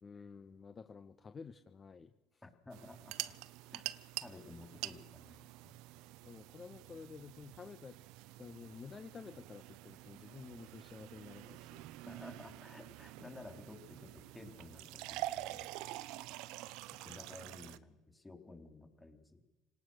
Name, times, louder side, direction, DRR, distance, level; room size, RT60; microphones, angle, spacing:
voice 1, 0.0-2.4 6.2-8.0 8.4-11.9 15.7-15.9, left 5 dB, 35° left, 8 dB, 1.3 m, -51 dB
voice 2, 2.4-3.1 3.7-3.9 4.2-5.7 12.0-15.7 16.7-16.8 17.0-19.4, left 3 dB, 15° left, 5 dB, 3.8 m, -54 dB
sound 1, 2.7-17.8, right 16 dB, 75° right, 0.9 m, -47 dB
28.0 x 18.5 x 6.5 m, 1.1 s
supercardioid pair, 80°, 0 cm